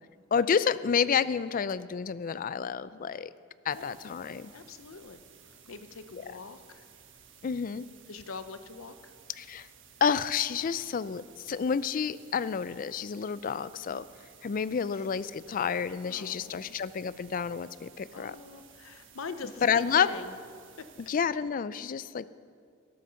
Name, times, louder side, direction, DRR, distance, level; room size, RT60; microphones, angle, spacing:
voice 1, 0.3-3.3 3.7-4.5 7.4-7.9 9.4-9.7 10.0-14.0 14.4-18.4 19.6-20.2 21.1-22.3, left 6 dB, 40° left, 17 dB, 0.4 m, -29 dB
sound 1, 3.7-21.1, right 7 dB, 65° right, 1.4 m, -56 dB
voice 2, 4.5-5.2 5.7-6.8 8.1-9.1 16.0-16.7 18.1-20.3 20.8-20.9, left 4 dB, 85° left, 10 dB, 0.7 m, -43 dB
12.5 x 11.5 x 6.8 m, 2.2 s
head